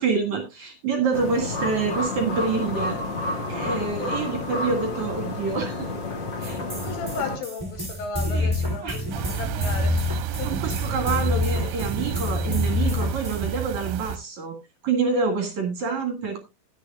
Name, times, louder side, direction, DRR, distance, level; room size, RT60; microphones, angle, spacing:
voice 1, 0.0-3.0 3.5-5.9 6.4-6.6 8.3-8.5 8.8-9.0 10.4-14.6 14.8-16.4, right 4 dB, 50° right, 2.7 m, -27 dB
sound 1, 1.1-7.4, left 2 dB, 40° left, 1.6 m, -30 dB
sound 2, 6.4-13.5, left 2 dB, 10° right, 1.3 m, -27 dB
voice 2, 6.7-10.0 10.4-10.6, left 4 dB, 80° left, 4.4 m, -35 dB
sound 3, 9.1-14.2, right 11 dB, 75° right, 2.7 m, -31 dB
20.0 x 7.0 x 2.3 m
omnidirectional pair, 5.2 m